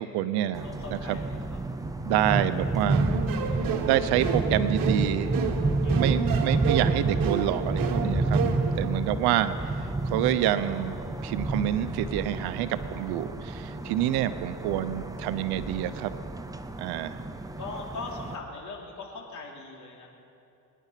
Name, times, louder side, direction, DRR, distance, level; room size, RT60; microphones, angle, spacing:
voice 1, 0.0-0.6 0.9-1.2 2.0-3.2 3.8-5.4 5.9-8.4 8.8-11.0 11.2-16.1 16.8-17.2, right 12 dB, 85° right, 12 dB, 0.8 m, -27 dB
sound 1, 0.5-18.4, right 2 dB, 10° right, 0.7 m, -30 dB
voice 2, 0.6-1.6 5.8-6.2 17.6-20.1, left 3 dB, 50° left, -1 dB, 3.2 m, -40 dB
sound 2, 2.9-8.9, right 6 dB, 65° right, 1.6 m, -32 dB
23.0 x 10.5 x 5.9 m, 2.8 s
cardioid pair, 100°, 37 cm